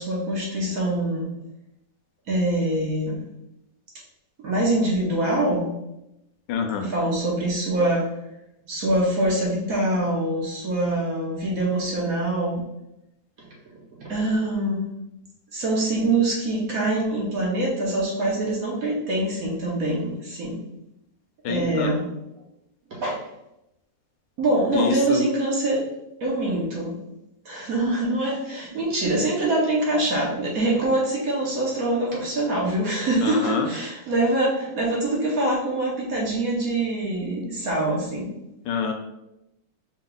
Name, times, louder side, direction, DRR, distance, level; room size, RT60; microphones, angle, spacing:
voice 1, 0.0-1.3 2.3-3.2 4.4-5.7 6.9-8.1 8.7-12.6 13.4-13.5 14.0-14.9 15.5-20.7 21.5-22.1 22.9-23.3 24.4-25.9 26.2-27.0 27.4-38.4, right 1 dB, 55° right, -3 dB, 1.1 m, -24 dB
voice 2, 6.5-6.9 21.4-21.9 24.7-25.3 33.2-33.7 38.6-38.9, left 5 dB, 75° left, 4 dB, 1.1 m, -26 dB
5.5 x 2.3 x 3.9 m, 0.88 s
omnidirectional pair, 2.0 m